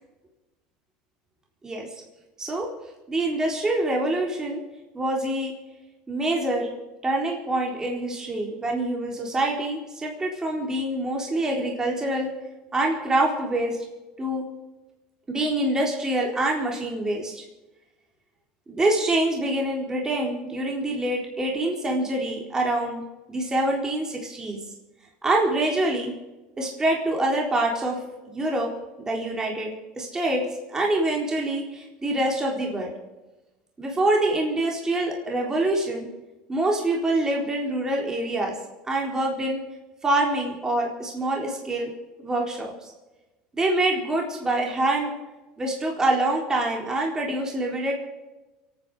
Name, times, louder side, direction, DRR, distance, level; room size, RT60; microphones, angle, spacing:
voice 1, 3.1-4.6 4.9-5.5 6.1-6.7 7.0-12.3 12.7-13.8 14.2-14.4 15.3-17.4 18.7-23.0 23.3-24.6 25.2-26.1 26.6-28.0 28.3-28.7 29.0-29.7 30.0-32.9 33.8-36.1 36.5-38.5 38.8-39.6 40.0-41.9 42.2-42.9 43.5-45.1 45.6-47.9, right 1 dB, 20° right, -1 dB, 4.0 m, -25 dB
29.0 x 9.7 x 5.1 m, 1.1 s
supercardioid pair, 100°, 3 cm